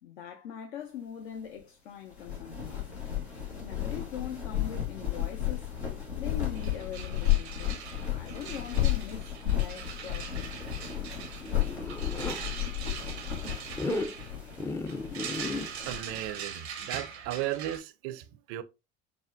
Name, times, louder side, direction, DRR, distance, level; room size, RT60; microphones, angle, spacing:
voice 1, 0.0-2.9 3.6-5.7 6.2-7.8 8.1-10.6, left 9 dB, 65° left, 0.5 m, -42 dB
sound 1, 2.1-16.3, left 12 dB, 85° left, 1.0 m, -33 dB
sound 2, 6.2-6.3 6.5-17.8, right 7 dB, 80° right, 0.7 m, -42 dB
Zipper (clothing), 10.8-12.4 13.7-14.1 14.6-15.7, left 2 dB, 10° left, 0.4 m, -34 dB
voice 2, 15.9-18.6, right 14 dB, 50° right, 0.5 m, -35 dB
6.0 x 2.1 x 2.4 m
figure-of-eight pair, 60°, 32 cm